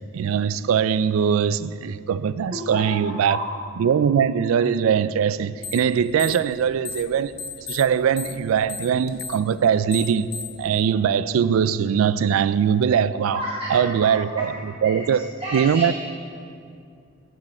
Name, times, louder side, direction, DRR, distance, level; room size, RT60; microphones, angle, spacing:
voice 1, 0.1-3.4 3.8-10.3 10.6-13.4 13.7-15.9, right 7 dB, 85° right, 0.3 m, -21 dB
voice 2, 2.5-2.8 3.2-3.4 13.3-13.8 14.4-14.5 14.8-15.9, right 1 dB, 25° right, 1.2 m, -31 dB
sound 1, 5.6-5.9 6.1-7.1 7.4-10.6, left 4 dB, 50° left, 1.0 m, -34 dB
15.0 x 6.4 x 4.2 m
head